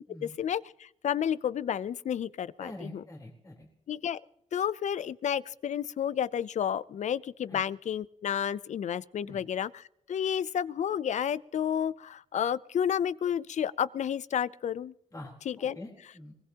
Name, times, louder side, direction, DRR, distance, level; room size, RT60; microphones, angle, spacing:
voice 1, 0.2-3.0 3.9-4.2 4.5-14.9 15.5-15.8, left 9 dB, 65° left, 19 dB, 0.5 m, -31 dB
voice 2, 2.6-3.7 7.5-7.6 9.2-9.4 15.1-16.3, left 1 dB, 25° left, -1 dB, 3.7 m, -45 dB
23.5 x 19.5 x 2.9 m, 0.79 s
wide cardioid pair, 125°, 13 cm